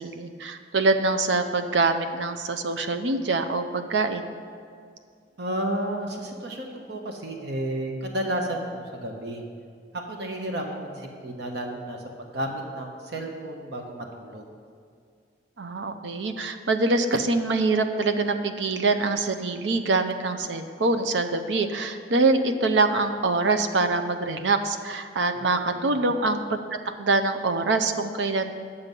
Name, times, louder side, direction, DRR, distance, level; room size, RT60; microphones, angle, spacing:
voice 1, 0.0-4.3 15.6-26.6 27.0-28.5, right 3 dB, 85° right, 8 dB, 0.6 m, -24 dB
voice 2, 5.4-9.4 10.1-14.5 25.4-26.2, right 1 dB, 70° right, 2 dB, 1.1 m, -32 dB
9.0 x 6.9 x 5.3 m, 2.2 s
head